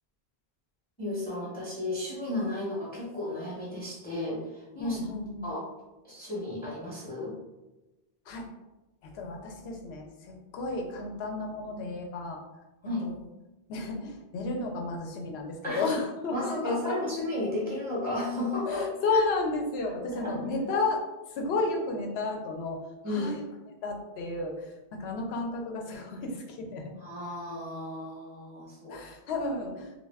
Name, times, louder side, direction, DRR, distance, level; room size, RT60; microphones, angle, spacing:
voice 1, 1.0-5.0 5.4-5.6 6.0-7.3 12.8-13.1 15.6-15.9 16.3-18.8 19.1-19.2 20.1-20.4 23.0-23.3 27.0-29.0 29.3-29.4, left 2 dB, 10° left, -6 dB, 0.6 m, -33 dB
voice 2, 4.8-5.5 8.3-8.5 9.1-12.4 13.0-13.2 13.7-16.9 18.7-21.0 21.3-23.4 23.8-26.9 28.9-29.9, left 3 dB, 80° left, 2 dB, 0.8 m, -32 dB
2.3 x 2.2 x 3.3 m, 1.1 s
omnidirectional pair, 1.0 m